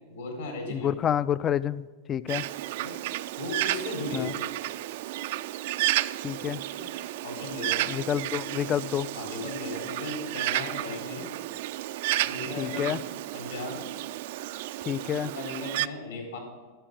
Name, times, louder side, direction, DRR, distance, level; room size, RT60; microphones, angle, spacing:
voice 1, 0.1-0.9 2.8-3.0 3.4-4.3 6.7-6.9 7.2-7.9 9.1-11.3 12.2-13.9 15.1-16.4, left 2 dB, 70° left, 0 dB, 3.8 m, -37 dB
voice 2, 0.7-2.4 4.1-4.3 6.2-6.6 7.9-9.1 12.6-13.0 14.9-15.3, left 9 dB, 25° left, 18 dB, 0.3 m, -28 dB
Bird, 2.3-15.9, right 15 dB, 50° right, 0.3 m, -32 dB
13.0 x 6.9 x 7.1 m, 1.4 s
figure-of-eight pair, 90°, 0 cm